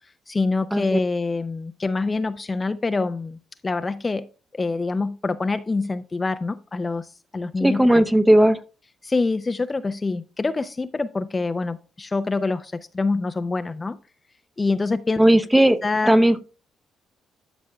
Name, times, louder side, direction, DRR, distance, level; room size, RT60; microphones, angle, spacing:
voice 1, 0.3-4.3 4.5-8.0 9.0-14.0 14.6-15.2 15.8-16.1, left 3 dB, 25° left, 0.4 m, -25 dB
voice 2, 7.6-8.6 15.2-15.8 16.1-16.4, right 1 dB, 10° right, 0.7 m, -16 dB
13.0 x 6.1 x 2.3 m
cardioid pair, 90°, 0 cm